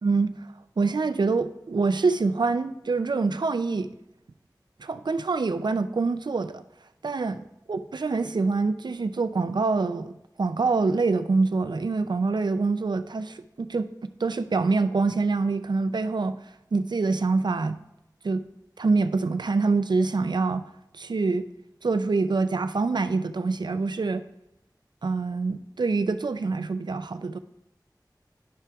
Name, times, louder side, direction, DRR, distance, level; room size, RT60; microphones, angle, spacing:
voice 1, 0.0-0.3 0.8-3.9 4.8-6.6 7.0-7.4 7.7-10.1 10.4-16.4 16.7-17.8 18.2-18.4 18.8-20.6 20.9-21.5 21.8-24.2 25.0-27.4, right 4 dB, 80° right, 11 dB, 0.4 m, -25 dB
10.5 x 5.7 x 2.3 m, 0.90 s
wide cardioid pair, 40°, 7 cm